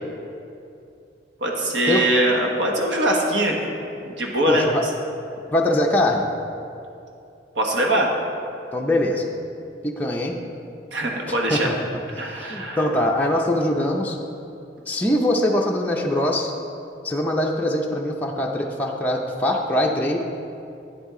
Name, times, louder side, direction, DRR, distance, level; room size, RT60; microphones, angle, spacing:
voice 1, 1.4-3.6 4.1-4.6 7.5-8.1 10.9-11.7 12.2-12.8, right 1 dB, 75° right, 0 dB, 1.3 m, -22 dB
voice 2, 4.5-4.8 5.5-6.3 8.7-9.2 9.8-10.4 11.3-11.7 12.2-14.2 14.9-16.5 17.0-20.2, left 1 dB, 10° left, -2 dB, 0.5 m, -22 dB
9.6 x 8.5 x 3.7 m, 2.6 s
head